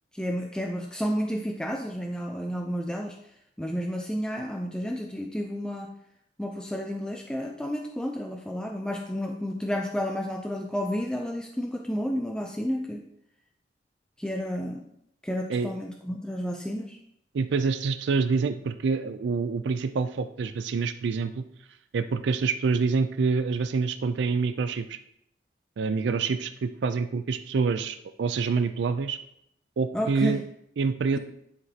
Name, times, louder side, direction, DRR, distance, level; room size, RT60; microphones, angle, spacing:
voice 1, 0.1-3.2 3.6-5.9 6.4-13.0 14.2-14.8 15.2-17.0 29.9-30.4 31.1-31.2, equal, 5° left, 2 dB, 0.4 m, -31 dB
voice 2, 17.3-21.4 21.9-25.0 25.8-29.2 29.8-30.4 30.8-31.2, right 4 dB, 75° right, 10 dB, 0.4 m, -26 dB
11.0 x 5.0 x 2.8 m, 0.75 s
head